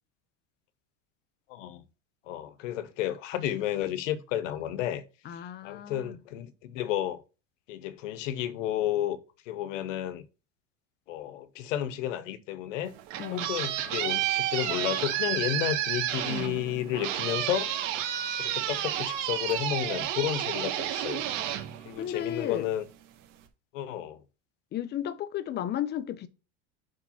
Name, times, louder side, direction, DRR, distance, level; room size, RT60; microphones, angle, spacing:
voice 1, 1.5-1.9 2.2-5.0 5.3-7.2 7.7-9.2 9.4-10.3 11.1-12.9 13.3-17.7 18.4-21.2 21.8-22.9 23.7-24.2, left 11 dB, 85° left, 1.0 m, -32 dB
voice 2, 5.2-6.2 13.2-13.5 22.0-22.7 24.7-26.3, left 10 dB, 30° left, 0.7 m, -34 dB
sound 1, 12.9-22.5, right 12 dB, 80° right, 1.9 m, -31 dB
5.1 x 4.7 x 5.6 m
supercardioid pair, 140°, 36 cm